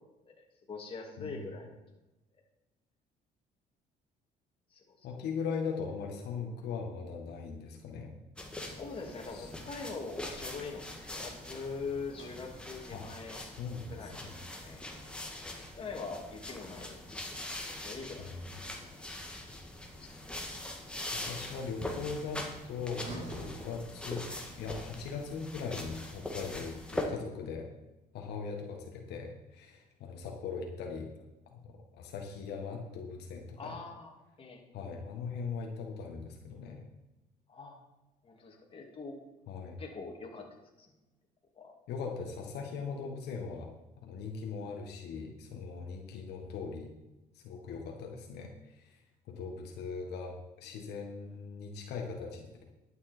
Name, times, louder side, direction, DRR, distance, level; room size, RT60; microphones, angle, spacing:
voice 1, 0.3-1.7 4.7-5.1 8.6-13.4 13.9-14.2 14.6-14.8 15.7-18.3 20.0-20.1 20.6-20.8 33.6-34.1 34.4-34.6 37.5-37.7 38.2-39.2 39.8-40.5 40.8-40.9 41.5-41.7, left 4 dB, 30° left, 0 dB, 2.7 m, -43 dB
voice 2, 5.0-8.1 9.3-9.5 12.9-13.1 13.3-14.4 18.2-18.8 21.1-24.3 24.6-27.7 28.1-31.1 31.5-33.8 34.7-36.8 39.5-39.8 41.9-43.7 44.0-46.9 47.3-52.6, left 5 dB, 75° left, 1 dB, 1.8 m, -40 dB
sound 1, 8.4-27.1, left 1 dB, 5° left, 2.0 m, -42 dB
Sliding door, 12.0-16.3 19.8-24.7, right 1 dB, 45° right, 4.6 m, -52 dB
12.0 x 9.2 x 4.5 m, 1.0 s
cardioid pair, 110°, 17 cm